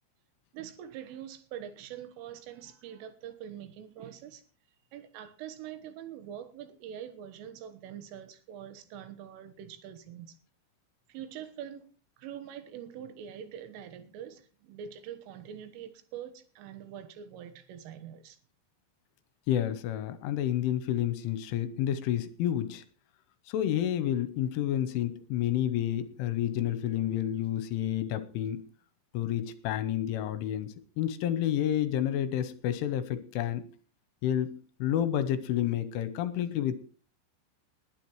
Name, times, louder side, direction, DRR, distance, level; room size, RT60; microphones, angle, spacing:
voice 1, 0.5-4.4 4.9-10.4 11.1-11.9 12.2-18.4, right 9 dB, 80° right, 3.7 m, -44 dB
voice 2, 19.5-22.8 23.5-28.6 29.1-33.7 34.2-36.8, left 11 dB, 80° left, 3.1 m, -30 dB
20.5 x 11.5 x 3.1 m
omnidirectional pair, 5.9 m